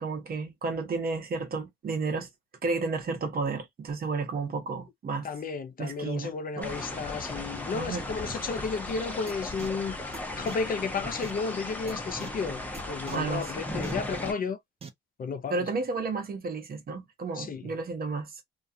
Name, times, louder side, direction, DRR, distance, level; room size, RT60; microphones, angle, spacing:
voice 1, 0.0-2.3 2.6-5.3 5.8-6.7 7.7-8.1 13.1-13.5 15.5-18.4, right 4 dB, 50° right, 1.0 m, -32 dB
voice 2, 5.2-12.6 12.9-14.6 15.2-15.7 17.3-17.7, left 5 dB, 45° left, 0.6 m, -33 dB
sound 1, 6.6-14.3, left 1 dB, 10° left, 0.9 m, -36 dB
sound 2, 9.3-9.4 9.6-9.7 10.1-10.2 10.5-10.6 11.2-11.3 11.9-12.0 12.2-12.3 12.7-12.8 13.1-13.2 13.8-13.9 14.8-14.9, right 5 dB, 30° right, 0.6 m, -41 dB
2.4 x 2.3 x 2.6 m
cardioid pair, 90°, 20 cm